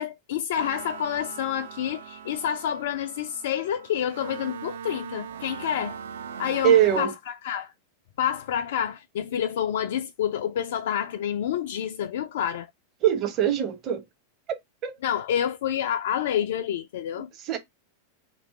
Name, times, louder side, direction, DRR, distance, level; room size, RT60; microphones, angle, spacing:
voice 1, 0.0-6.0 6.4-7.7 8.2-12.7 15.0-17.3, left 9 dB, 55° left, 0.3 m, -28 dB
sound 1, 0.5-7.0, right 7 dB, 60° right, 0.5 m, -40 dB
voice 2, 6.6-7.1 13.0-14.0 14.8-14.9 17.4-17.6, right 10 dB, 35° right, 1.0 m, -22 dB
3.0 x 3.0 x 4.2 m
figure-of-eight pair, 90°, 0 cm